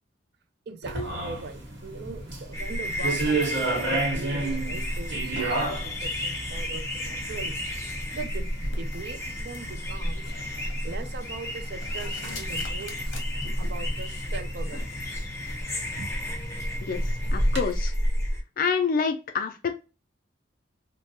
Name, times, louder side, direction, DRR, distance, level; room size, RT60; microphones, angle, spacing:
voice 1, 0.7-7.6 8.1-10.3 10.8-13.2 13.6-15.2 15.9-16.1, right 4 dB, 60° right, 0.4 m, -40 dB
sound 1, 0.8-17.6, right 2 dB, 85° right, 1.2 m, -34 dB
sound 2, 2.5-18.4, equal, 15° left, 0.7 m, -31 dB
sound 3, 5.4-14.8, left 3 dB, 75° left, 0.8 m, -46 dB
voice 2, 17.3-17.9 18.6-19.8, left 5 dB, 50° left, 0.3 m, -27 dB
3.2 x 2.1 x 2.7 m
head